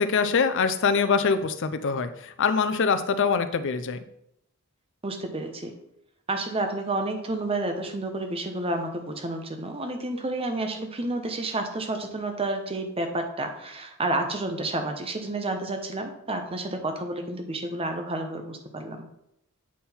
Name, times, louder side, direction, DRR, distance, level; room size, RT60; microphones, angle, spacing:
voice 1, 0.0-4.0, left 5 dB, 55° left, 11 dB, 0.5 m, -24 dB
voice 2, 5.0-5.7 6.3-19.1, right 2 dB, 25° right, 5 dB, 0.8 m, -30 dB
8.5 x 3.7 x 4.3 m, 0.79 s
head